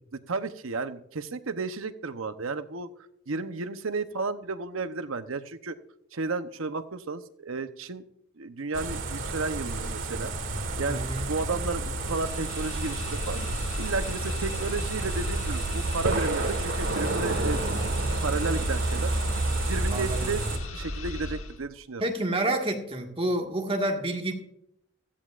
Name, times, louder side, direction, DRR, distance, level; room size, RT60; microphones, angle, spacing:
voice 1, 0.1-2.9 3.3-5.8 6.1-8.0 8.4-10.3 10.8-11.0 11.3-13.4 13.8-17.8 18.2-19.1 19.7-22.0, right 3 dB, 85° right, 10 dB, 0.8 m, -33 dB
crickets and river, 8.7-20.6, right 3 dB, 70° right, 1.6 m, -30 dB
voice 2, 10.8-11.3 19.9-20.3 22.0-24.3, right 1 dB, 30° right, 2 dB, 1.7 m, -29 dB
sound 1, 11.9-21.6, left 2 dB, 80° left, 1.2 m, -35 dB
16.0 x 14.0 x 2.5 m, 0.78 s
head